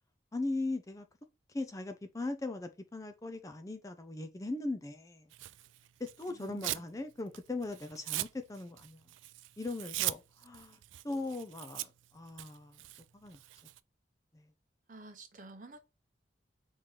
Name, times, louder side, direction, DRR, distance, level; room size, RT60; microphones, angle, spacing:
voice 1, 0.3-1.1 1.5-5.3 6.0-9.0 9.6-10.8 11.0-12.8 13.1-13.4 14.3-14.5, left 2 dB, 15° left, 0.4 m, -39 dB
Tearing, 5.3-6.9 7.3-13.8, right 16 dB, 85° right, 0.3 m, -40 dB
voice 2, 6.3-6.9 14.9-15.8, right 2 dB, 45° right, 0.7 m, -51 dB
4.5 x 3.1 x 3.8 m
head